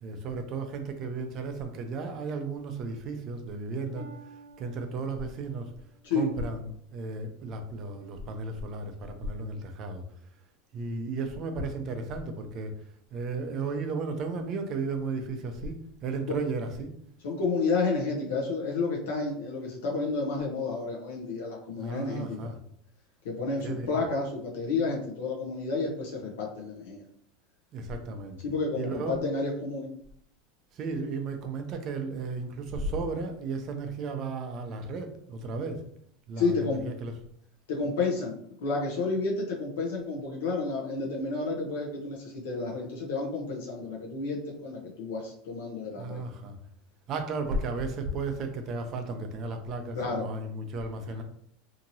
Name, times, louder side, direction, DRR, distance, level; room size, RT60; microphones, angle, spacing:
voice 1, 0.0-5.7 6.1-10.0 10.7-12.7 13.1-16.9 21.8-22.6 23.6-23.9 27.7-28.4 28.7-29.2 30.7-35.8 36.3-37.1 46.0-46.6 47.1-51.2, right 3 dB, 40° right, 6 dB, 0.5 m, -34 dB
Harp, 3.9-7.7 8.2-8.6 9.3-9.4, right 3 dB, 75° right, 0.7 m, -53 dB
voice 2, 17.2-22.5 23.2-27.0 28.4-29.9 36.4-36.8 37.7-46.2 49.9-50.3, left 3 dB, 85° left, -1 dB, 0.7 m, -31 dB
2.8 x 2.7 x 2.6 m, 0.67 s
supercardioid pair, 135°, 0 cm